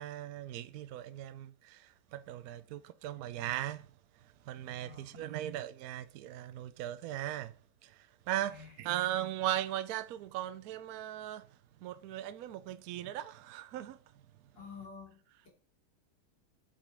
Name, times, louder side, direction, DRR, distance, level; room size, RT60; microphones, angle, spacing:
voice 1, 0.0-7.6 7.8-14.2, right 13 dB, 85° right, 0.8 m, -38 dB
voice 2, 4.8-5.2 8.5-8.7 14.5-15.5, left 5 dB, 60° left, 3.8 m, -50 dB
7.4 x 5.5 x 3.4 m
omnidirectional pair, 2.2 m